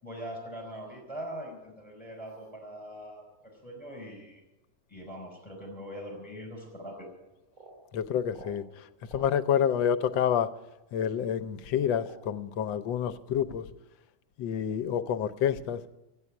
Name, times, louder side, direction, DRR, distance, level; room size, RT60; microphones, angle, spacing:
voice 1, 0.0-4.4 4.9-7.1, equal, 5° left, -1 dB, 4.9 m, -42 dB
sound 1, 6.8-6.9 7.5-7.8 8.3-8.6 9.1-9.3 10.1-10.3 11.2-11.3 11.9-12.4 13.0-13.2, right 3 dB, 45° right, 4.1 m, -49 dB
voice 2, 7.9-8.6 9.1-10.5 10.9-13.6 14.4-15.8, left 8 dB, 80° left, 11 dB, 1.5 m, -28 dB
14.0 x 9.0 x 9.6 m, 0.98 s
omnidirectional pair, 2.0 m